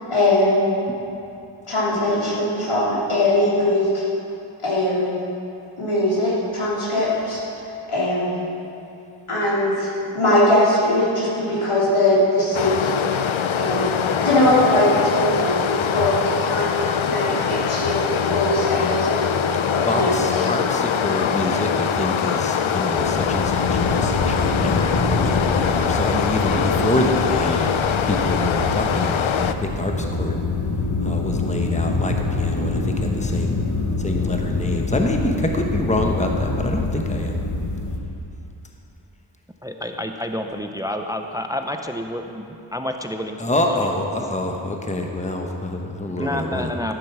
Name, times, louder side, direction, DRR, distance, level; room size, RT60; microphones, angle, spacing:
voice 1, 0.1-0.7 1.7-4.0 4.6-5.2 5.8-7.4 7.9-8.4 9.3-12.9 13.6-19.2 19.7-20.5 26.5-26.8, left 1 dB, 85° left, -7 dB, 3.2 m, -21 dB
Stream, 12.5-29.5, left 7 dB, 70° left, 0.6 m, -23 dB
voice 2, 19.9-27.7 28.0-30.4 31.0-33.6 34.0-37.4 43.4-46.7, left 1 dB, 15° left, 2 dB, 1.1 m, -26 dB
sound 1, 23.0-38.0, left 3 dB, 35° left, 1.2 m, -25 dB
voice 3, 39.6-43.8 46.1-47.0, left 1 dB, 5° right, 5 dB, 0.6 m, -29 dB
13.5 x 7.6 x 6.0 m, 2.7 s
wide cardioid pair, 60°, 49 cm